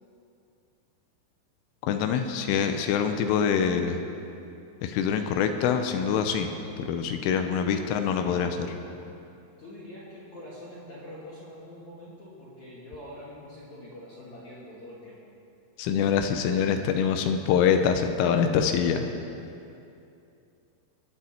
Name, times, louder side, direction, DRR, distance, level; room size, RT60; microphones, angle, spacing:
voice 1, 1.9-4.0 4.8-6.5 6.8-8.5 15.8-19.1, left 7 dB, 85° left, 6 dB, 3.3 m, -25 dB
voice 2, 7.5-8.6 9.6-15.2 19.0-19.1, left 1 dB, 50° left, -9 dB, 2.6 m, -44 dB
24.0 x 8.8 x 4.4 m, 2.6 s
omnidirectional pair, 5.6 m